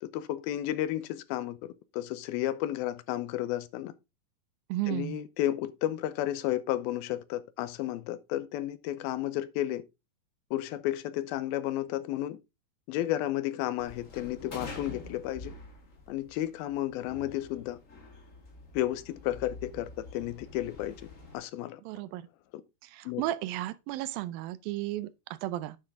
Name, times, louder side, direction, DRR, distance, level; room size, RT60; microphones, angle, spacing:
voice 1, 0.0-3.9 4.9-9.8 10.5-12.4 12.9-15.5 16.1-17.8 18.7-21.0 21.3-21.8 22.5-22.6 23.1-23.2, left 13 dB, 90° left, 2.6 m, -32 dB
voice 2, 4.7-5.2 21.9-22.2 22.8-25.8, right 15 dB, 80° right, 2.3 m, -34 dB
sound 1, 13.8-21.4, left 3 dB, 35° left, 1.2 m, -46 dB
9.8 x 6.2 x 3.6 m
omnidirectional pair, 4.3 m